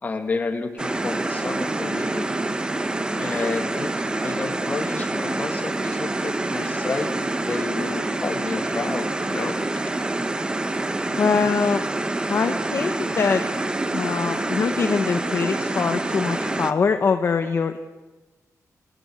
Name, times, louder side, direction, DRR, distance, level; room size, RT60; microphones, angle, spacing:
voice 1, 0.0-2.3 3.1-7.1 7.4-9.6, left 3 dB, 30° left, 5 dB, 2.2 m, -30 dB
sound 1, 0.8-16.7, right 2 dB, 15° right, 1.0 m, -26 dB
voice 2, 11.2-11.8 12.3-13.4 13.9-17.8, left 5 dB, 45° left, 7 dB, 1.0 m, -23 dB
28.5 x 17.5 x 8.0 m, 1.2 s
wide cardioid pair, 165°, 6 cm